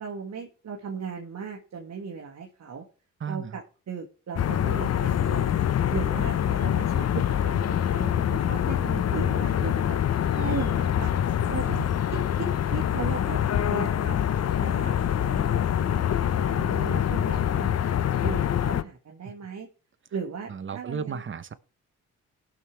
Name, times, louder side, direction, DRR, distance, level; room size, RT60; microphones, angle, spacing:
voice 1, 0.0-2.9 3.3-5.5 5.9-10.0 10.3-11.1 11.5-11.6 12.1-13.4 13.7-14.2 14.6-15.5 15.8-16.0 16.5-17.9 18.2-19.7 20.1-21.2, right 5 dB, 50° right, 1.5 m, -37 dB
voice 2, 3.2-3.6 11.5-11.9 20.5-21.5, right 6 dB, 35° right, 0.9 m, -34 dB
sound 1, 4.4-18.8, left 10 dB, 45° left, 0.6 m, -25 dB
18.5 x 6.4 x 3.2 m
supercardioid pair, 60°, 35 cm